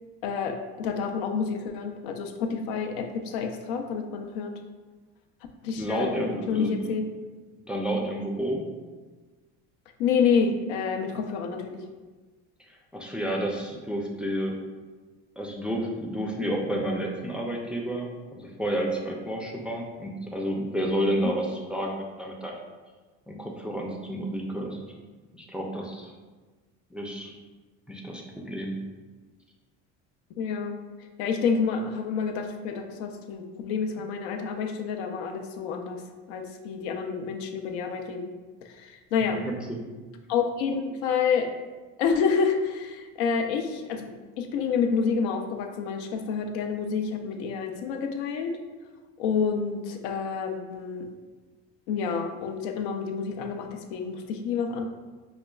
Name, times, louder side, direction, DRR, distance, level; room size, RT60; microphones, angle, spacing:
voice 1, 0.2-4.5 5.6-7.0 10.0-11.8 21.2-21.4 30.4-30.8 31.2-36.0 36.3-38.3 38.6-39.4 40.3-41.5 42.0-48.6 49.2-51.1 51.9-54.9, left 6 dB, 85° left, 4 dB, 0.5 m, -28 dB
voice 2, 5.8-6.9 7.7-8.6 12.9-14.6 15.4-22.5 23.3-24.8 25.3-26.1 26.9-27.3 27.9-28.8 39.2-39.9, equal, 5° right, -2 dB, 0.3 m, -30 dB
4.9 x 2.2 x 2.3 m, 1.3 s
supercardioid pair, 110°, 33 cm